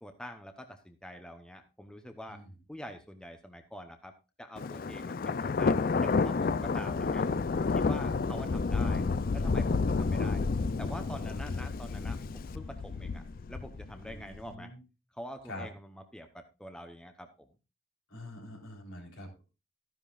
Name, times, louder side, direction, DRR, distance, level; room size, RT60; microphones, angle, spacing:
voice 1, 0.0-2.4 2.7-7.3 7.6-9.1 9.3-10.4 10.8-14.7 15.1-17.5, equal, 5° left, 6 dB, 0.8 m, -46 dB
Thunder, 4.6-14.4, left 4 dB, 45° left, 0.4 m, -30 dB
voice 2, 14.0-14.8 15.5-15.7 18.1-19.4, left 1 dB, 75° left, 0 dB, 4.0 m, -45 dB
13.5 x 10.5 x 2.4 m, 0.30 s
head